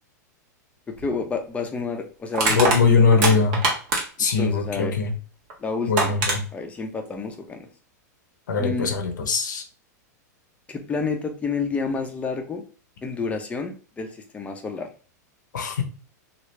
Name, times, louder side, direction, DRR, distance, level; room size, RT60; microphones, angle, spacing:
voice 1, 0.9-3.4 4.4-4.9 5.6-6.1 6.5-7.7 8.6-8.9 10.7-12.6 13.0-14.9, left 4 dB, 15° left, 4 dB, 0.6 m, -29 dB
Crushing, 1.0-1.1 2.3-4.3 5.5-5.6 6.0-6.4, right 3 dB, 50° right, 1.2 m, -23 dB
voice 2, 2.5-3.6 4.2-5.1 5.9-6.4 8.5-9.6 15.5-15.8, left 4 dB, 90° left, 5 dB, 0.7 m, -21 dB
3.0 x 2.4 x 3.1 m, 0.39 s
hypercardioid pair, 125°, 10 cm